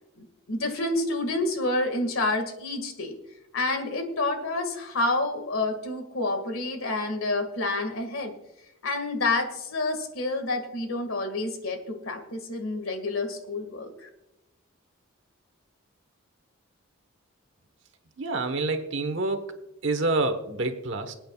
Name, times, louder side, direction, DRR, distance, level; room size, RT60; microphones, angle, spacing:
voice 1, 0.2-3.1 3.5-8.3 8.8-14.1, left 2 dB, 85° left, 6 dB, 2.0 m, -29 dB
voice 2, 18.2-19.5 19.8-21.1, right 2 dB, 65° right, 7 dB, 1.3 m, -27 dB
26.5 x 8.8 x 2.4 m, 0.90 s
head